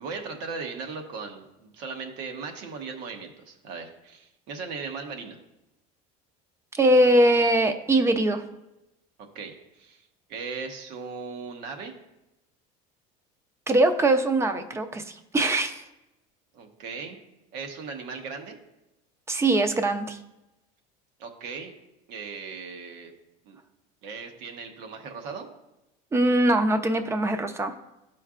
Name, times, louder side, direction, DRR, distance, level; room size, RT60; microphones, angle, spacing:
voice 1, 0.0-5.4 9.3-10.0 10.3-11.9 16.5-17.2 17.5-18.6 21.2-21.7 22.1-23.1 23.4-23.6 24.0-25.5, right 5 dB, 70° right, 4 dB, 1.2 m, -37 dB
voice 2, 6.7-8.4 13.7-15.8 19.3-20.2 26.1-27.7, right 1 dB, 15° right, 8 dB, 0.6 m, -22 dB
12.5 x 4.5 x 2.5 m, 0.95 s
cardioid pair, 125°, 18 cm